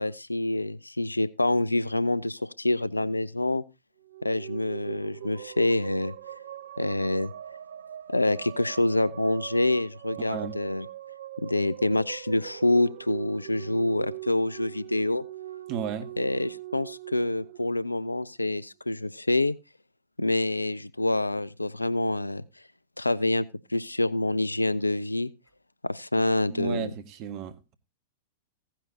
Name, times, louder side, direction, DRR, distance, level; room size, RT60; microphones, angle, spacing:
voice 1, 0.0-3.6 4.2-6.1 6.8-7.3 8.1-10.9 11.4-15.2 16.2-19.5 20.2-22.4 23.0-25.3 25.8-26.9, left 2 dB, 85° left, 0.5 m, -26 dB
sound 1, 4.0-18.5, right 13 dB, 60° right, 0.6 m, -41 dB
voice 2, 10.2-10.6 15.7-16.1 26.5-27.7, right 8 dB, 40° right, 1.4 m, -34 dB
15.5 x 10.0 x 2.8 m
figure-of-eight pair, 100°, 0 cm